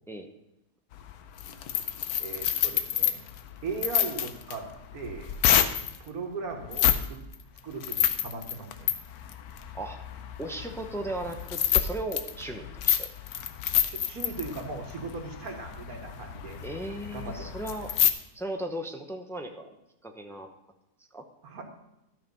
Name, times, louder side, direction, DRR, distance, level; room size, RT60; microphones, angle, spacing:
sound 1, 0.9-6.0 6.6-7.1 7.3-18.1, left 10 dB, 80° left, 1.2 m, -28 dB
voice 1, 2.2-3.2 3.6-4.7 4.9-5.3 6.0-7.2 7.6-8.9 13.8-16.6 17.1-17.5 21.4-21.6, right 4 dB, 75° right, 3 dB, 1.8 m, -38 dB
voice 2, 10.4-13.1 16.6-17.9 18.3-19.7 20.0-20.5 21.1-21.2, right 1 dB, 5° left, 4 dB, 0.4 m, -36 dB
12.5 x 5.7 x 5.3 m, 0.89 s
omnidirectional pair, 1.6 m